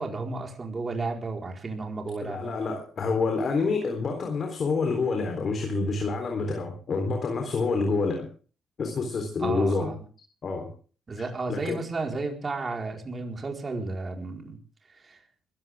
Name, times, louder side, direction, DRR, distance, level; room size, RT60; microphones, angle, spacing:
voice 1, 0.0-2.5 9.4-10.0 11.1-14.6 14.9-15.2, right 3 dB, 30° right, 2 dB, 4.6 m, -33 dB
voice 2, 2.2-8.2 8.8-9.9 10.4-10.7 11.5-11.8, left 4 dB, 50° left, 4 dB, 3.8 m, -27 dB
21.5 x 15.5 x 3.7 m, 0.40 s
cardioid pair, 90°, 0 cm